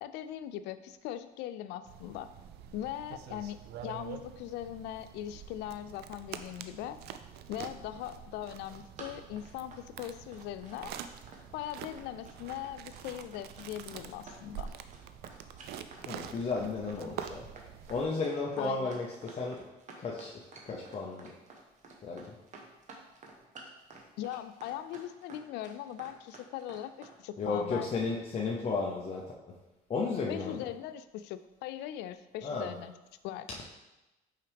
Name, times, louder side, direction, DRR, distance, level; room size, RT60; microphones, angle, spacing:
voice 1, 0.0-2.3 2.7-7.0 7.5-10.9 11.5-14.7 18.6-19.0 24.2-28.1 30.3-32.9 33.2-33.5, left 12 dB, 85° left, 12 dB, 0.4 m, -40 dB
sound 1, 1.9-18.1, right 9 dB, 75° right, 0.4 m, -46 dB
Run, 8.6-27.2, right 3 dB, 45° right, 1.1 m, -52 dB
voice 2, 16.1-17.5 17.9-19.6 19.9-20.3 20.6-21.3 22.0-22.2 27.4-29.3 29.9-30.6 32.4-32.7, left 4 dB, 40° left, -2 dB, 0.7 m, -33 dB
5.7 x 4.7 x 3.5 m, 1.0 s
cardioid pair, 110°, 17 cm